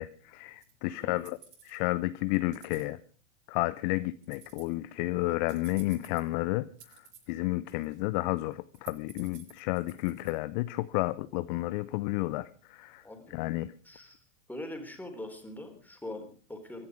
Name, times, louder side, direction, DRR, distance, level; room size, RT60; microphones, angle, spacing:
voice 1, 0.0-1.4 1.6-3.0 3.5-6.7 7.3-13.0 13.3-13.7, left 19 dB, 35° left, 15 dB, 0.6 m, -31 dB
sound 1, 0.6-0.7 1.2-1.8 2.3-2.8 4.2-4.7 5.5-6.3 6.8-7.3 7.7-8.2 8.5-10.3, right 9 dB, 60° right, 7.9 m, -53 dB
voice 2, 13.0-13.4 13.8-14.2 14.5-16.9, left 1 dB, 5° left, 5 dB, 3.8 m, -42 dB
24.0 x 10.5 x 4.9 m, 0.41 s
figure-of-eight pair, 105°, 39 cm